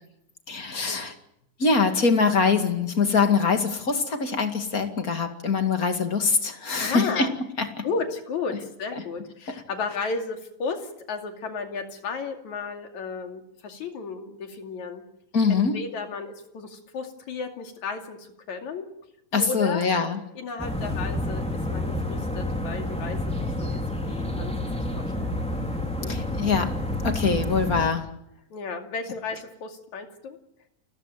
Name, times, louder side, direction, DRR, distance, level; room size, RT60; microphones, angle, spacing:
voice 1, 0.5-1.1 1.6-7.3 7.6-7.8 15.3-15.8 19.3-20.2 26.1-26.7 27.0-28.1, left 5 dB, 30° left, 6 dB, 2.1 m, -23 dB
voice 2, 6.8-7.3 7.8-15.0 15.5-18.9 19.4-19.9 20.4-23.2 23.6-24.5 25.0-25.4 26.0-26.2 28.5-30.4, left 4 dB, 55° left, 5 dB, 3.7 m, -34 dB
sound 1, 20.6-27.9, left 1 dB, ahead, 2.8 m, -29 dB
29.5 x 15.0 x 9.3 m, 0.79 s
omnidirectional pair, 4.1 m